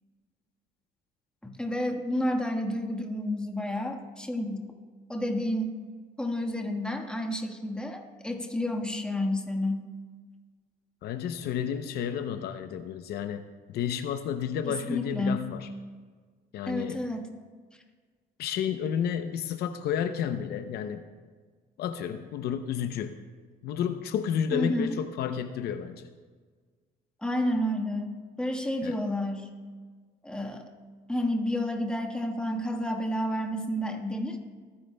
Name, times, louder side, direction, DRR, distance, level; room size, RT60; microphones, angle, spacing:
voice 1, 1.4-4.7 5.1-5.8 6.2-9.9 14.6-15.4 16.7-17.3 24.5-25.0 27.2-28.1 28.4-29.5 30.2-30.6 31.1-34.4, left 1 dB, 5° left, 3 dB, 1.4 m, -30 dB
voice 2, 11.0-13.4 13.7-15.7 16.5-17.0 18.4-21.0 21.8-23.1 23.6-26.1 28.8-29.0, left 8 dB, 70° left, 9 dB, 0.6 m, -31 dB
25.0 x 10.0 x 2.2 m, 1.5 s
cardioid pair, 110°, 17 cm